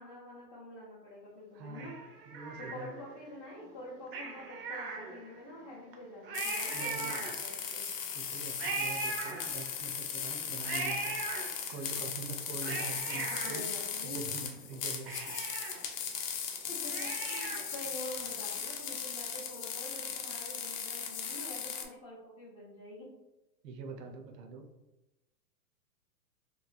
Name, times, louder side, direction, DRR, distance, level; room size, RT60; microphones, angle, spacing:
voice 1, 0.0-1.9 2.6-7.9 13.1-14.2 16.7-23.1, left 1 dB, 25° left, -7 dB, 0.5 m, -46 dB
voice 2, 1.5-1.9 2.3-2.9 6.7-7.3 8.1-11.2 11.7-13.6 14.0-15.4 23.6-24.7, right 3 dB, 85° right, 4 dB, 0.7 m, -44 dB
Cat, 1.7-3.2 4.1-5.5 5.9-6.0 6.2-7.7 8.6-9.9 10.6-11.9 12.4-14.4 14.7-14.8 15.1-17.8 18.2-18.3, right 4 dB, 40° right, 0.4 m, -39 dB
sound 1, 6.3-21.9, left 7 dB, 75° left, 0.7 m, -38 dB
3.1 x 2.2 x 2.4 m, 1.0 s
hypercardioid pair, 135°, 48 cm